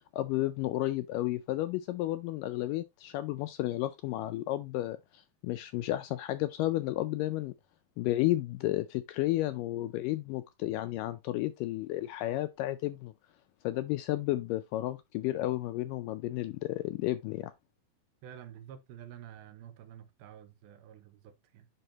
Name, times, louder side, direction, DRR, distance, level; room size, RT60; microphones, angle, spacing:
voice 1, 0.1-7.5 8.0-13.1 13.6-17.5, left 16 dB, 85° left, 1.9 m, -32 dB
voice 2, 18.2-21.7, right 10 dB, 90° right, 2.7 m, -49 dB
7.8 x 5.4 x 2.8 m
omnidirectional pair, 4.3 m